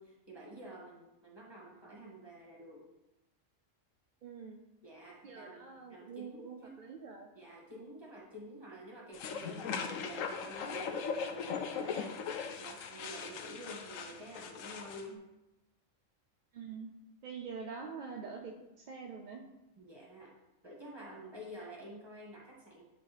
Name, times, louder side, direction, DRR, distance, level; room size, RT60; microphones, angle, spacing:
voice 1, 0.0-2.8 4.8-6.8 7.3-15.2 19.8-20.3 20.6-22.8, equal, 20° right, -4 dB, 1.6 m, -49 dB
voice 2, 4.2-4.6 5.2-7.3 15.1-15.2 16.5-16.9 17.2-19.4, right 5 dB, 60° right, 2 dB, 0.5 m, -45 dB
sound 1, 9.1-15.0, left 6 dB, 85° left, 1.0 m, -39 dB
9.3 x 3.2 x 3.3 m, 0.96 s
omnidirectional pair, 1.4 m